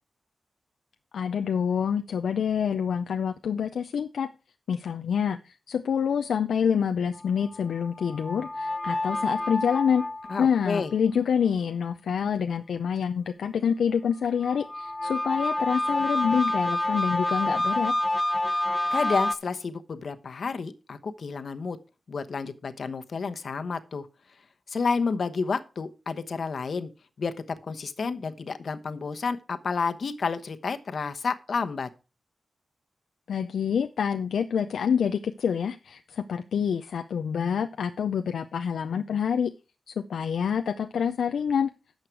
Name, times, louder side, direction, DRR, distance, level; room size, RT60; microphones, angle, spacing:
voice 1, 1.1-4.3 4.7-10.0 10.4-17.9 33.3-39.5 39.9-41.7, left 7 dB, 85° left, 8 dB, 0.5 m, -27 dB
sound 1, 7.1-10.8 14.4-19.3, left 1 dB, 20° left, 1.0 m, -28 dB
voice 2, 10.3-10.9 18.9-21.8 22.1-24.1 24.7-26.9 27.2-31.9, left 4 dB, 70° left, 10 dB, 1.0 m, -30 dB
11.5 x 6.5 x 4.6 m, 0.31 s
cardioid pair, 45°, 0 cm